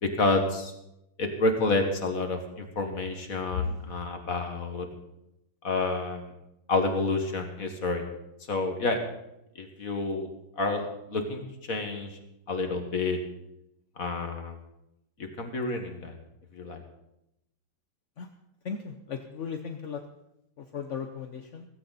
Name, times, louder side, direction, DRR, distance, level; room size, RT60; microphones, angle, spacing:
voice 1, 0.0-0.7 1.2-4.9 5.6-6.3 6.7-8.1 8.5-9.0 9.6-10.3 10.6-11.4 11.7-12.1 12.5-13.2 14.0-14.5 15.4-16.2 16.5-16.8, left 3 dB, 45° left, 5 dB, 1.9 m, -29 dB
voice 2, 18.6-20.0 20.7-21.6, left 6 dB, 60° left, 6 dB, 0.8 m, -35 dB
16.5 x 15.5 x 4.2 m, 0.84 s
omnidirectional pair, 2.3 m